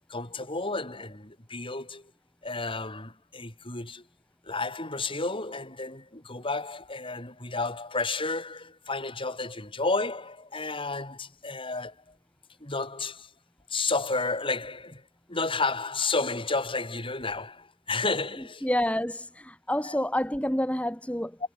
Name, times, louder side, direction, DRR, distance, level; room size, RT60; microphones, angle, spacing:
voice 1, 0.1-2.1 2.4-4.1 4.4-12.0 12.6-13.3 13.7-18.7 19.8-20.0, left 3 dB, 25° left, 7.5 m, -31 dB
voice 2, 18.6-21.4, left 1 dB, 5° left, 4.8 m, -28 dB
head